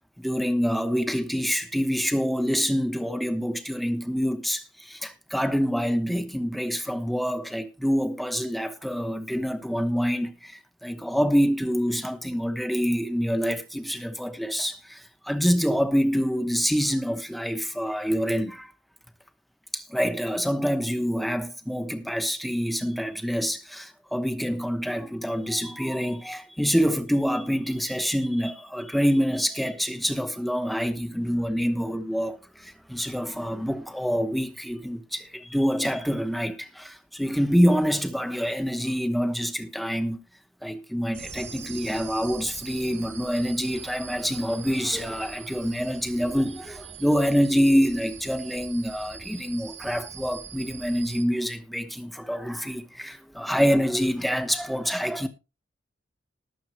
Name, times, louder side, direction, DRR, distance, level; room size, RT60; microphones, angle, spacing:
voice 1, 0.2-18.7 19.7-40.2 40.6-55.3, equal, ahead, 1.0 m, -26 dB
sound 1, 41.1-51.2, right 6 dB, 70° right, 2.2 m, -42 dB
19.5 x 7.3 x 3.1 m
head